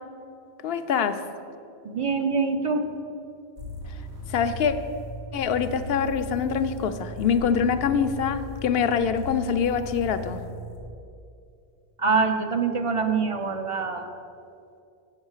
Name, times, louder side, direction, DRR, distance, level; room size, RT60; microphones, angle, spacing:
voice 1, 0.6-1.2 4.3-4.7 5.3-10.4, left 7 dB, 70° left, 10 dB, 0.8 m, -24 dB
voice 2, 1.9-2.9 12.0-14.1, right 4 dB, 40° right, 6 dB, 0.6 m, -24 dB
sound 1, 3.6-10.8, left 1 dB, 85° right, 1.9 m, -37 dB
8.0 x 6.8 x 7.2 m, 2.6 s
omnidirectional pair, 1.1 m